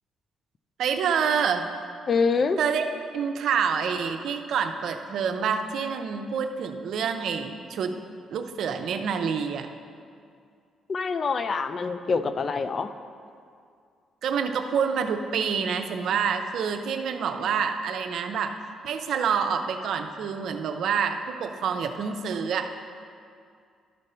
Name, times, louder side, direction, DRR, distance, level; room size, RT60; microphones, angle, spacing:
voice 1, 0.8-1.6 2.6-2.8 3.1-7.9 8.3-9.7 14.2-18.5 18.8-22.7, right 6 dB, 70° right, 7 dB, 0.6 m, -27 dB
voice 2, 2.1-2.6 10.9-12.9, left 4 dB, 45° left, 11 dB, 0.4 m, -25 dB
12.5 x 5.3 x 4.3 m, 2.3 s
cardioid pair, 90°, 0 cm